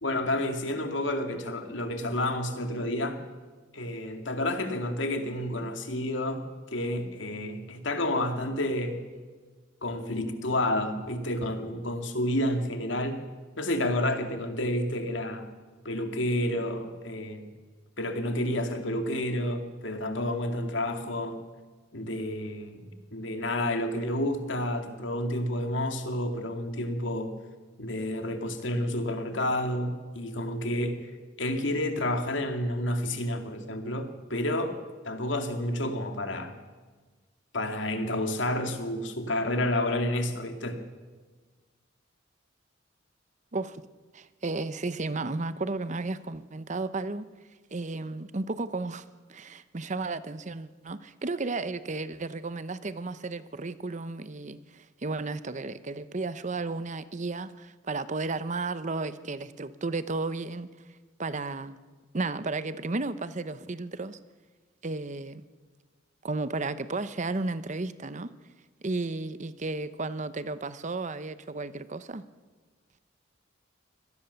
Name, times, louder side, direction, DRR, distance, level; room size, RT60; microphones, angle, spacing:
voice 1, 0.0-3.2 3.7-6.4 6.7-9.0 9.8-13.2 13.6-15.5 15.8-17.4 18.0-21.4 21.9-27.3 27.8-31.0 31.4-34.8 35.0-36.5 37.5-40.8, left 1 dB, 70° left, 2.4 m, -30 dB
voice 2, 44.1-47.3 47.7-60.7 61.2-61.8 62.1-64.2 64.8-65.4 66.2-68.3 68.8-72.2, right 3 dB, 40° right, 0.8 m, -33 dB
25.0 x 18.0 x 7.0 m
head